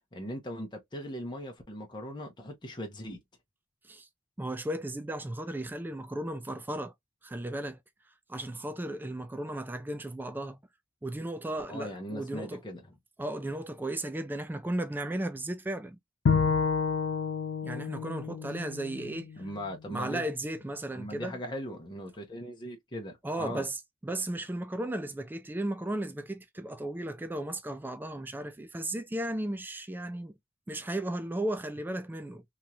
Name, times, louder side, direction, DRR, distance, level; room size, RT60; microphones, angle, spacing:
voice 1, 0.1-3.2 11.7-12.9 19.4-20.2 20.9-23.7, equal, 20° left, 0.8 m, -39 dB
voice 2, 4.4-6.9 7.2-7.8 8.3-10.6 11.0-12.6 13.2-16.0 17.6-19.3 19.9-21.4 23.2-30.4 30.7-32.4, right 1 dB, 10° right, 0.3 m, -35 dB
Bowed string instrument, 16.3-19.5, left 5 dB, 60° left, 0.5 m, -29 dB
3.0 x 2.8 x 2.3 m
head